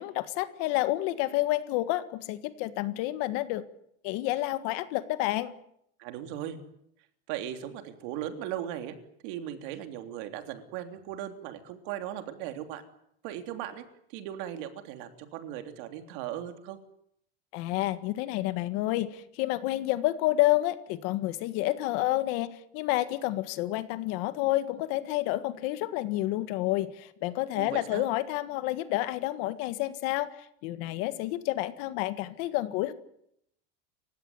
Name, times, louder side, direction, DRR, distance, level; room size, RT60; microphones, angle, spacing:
voice 1, 0.0-3.6 4.0-5.5 17.5-30.3 30.6-32.9, left 16 dB, 45° left, 12 dB, 1.7 m, -29 dB
voice 2, 6.0-6.6 7.3-8.9 9.2-12.8 13.2-13.8 14.1-16.8 27.6-28.1, right 11 dB, 50° right, 7 dB, 3.4 m, -38 dB
29.5 x 16.5 x 9.8 m, 0.74 s
supercardioid pair, 175°, 32 cm